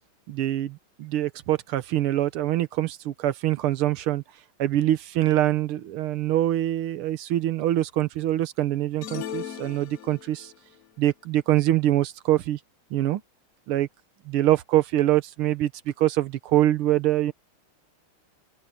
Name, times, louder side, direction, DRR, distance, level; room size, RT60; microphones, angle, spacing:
voice 1, 0.3-4.2 4.6-10.5 11.0-12.6 12.9-13.2 13.7-13.9 14.2-17.3, right 13 dB, 80° right, 1.8 m, -24 dB
sound 1, 9.0-10.6, left 10 dB, 75° left, 0.7 m, -37 dB
open air
omnidirectional pair, 2.4 m